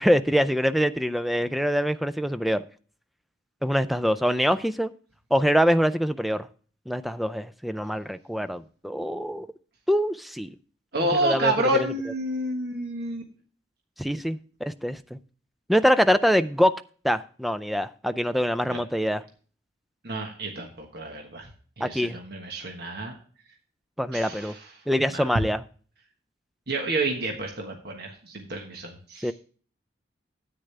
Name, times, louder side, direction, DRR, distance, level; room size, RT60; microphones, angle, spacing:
voice 1, 0.0-2.6 3.6-4.9 5.3-6.5 6.9-9.5 9.9-10.5 11.0-11.7 14.0-15.2 15.7-19.2 21.8-22.2 24.0-24.6 24.9-25.6 29.2-29.3, equal, ahead, 13 dB, 0.4 m, -24 dB
voice 2, 10.9-13.2 18.7-18.8 20.0-21.5 21.8-23.1 24.1-24.6 25.1-25.2 26.7-29.3, right 1 dB, 55° right, 2 dB, 1.3 m, -29 dB
10.0 x 9.1 x 3.3 m, 0.42 s
head